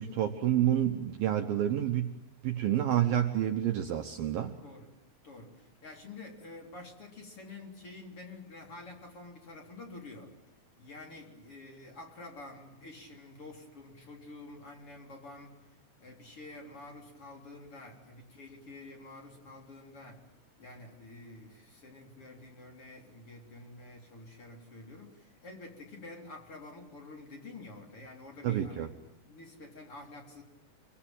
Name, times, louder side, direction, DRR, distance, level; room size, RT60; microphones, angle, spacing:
voice 1, 0.0-2.1 2.4-4.5 28.4-28.9, right 11 dB, 65° right, 5 dB, 2.5 m, -29 dB
voice 2, 4.6-4.9 5.2-10.3 10.8-15.6 16.0-20.2 20.6-28.9 29.2-30.4, left 2 dB, 30° left, 1 dB, 4.1 m, -48 dB
27.5 x 23.5 x 9.0 m, 0.91 s
omnidirectional pair, 5.2 m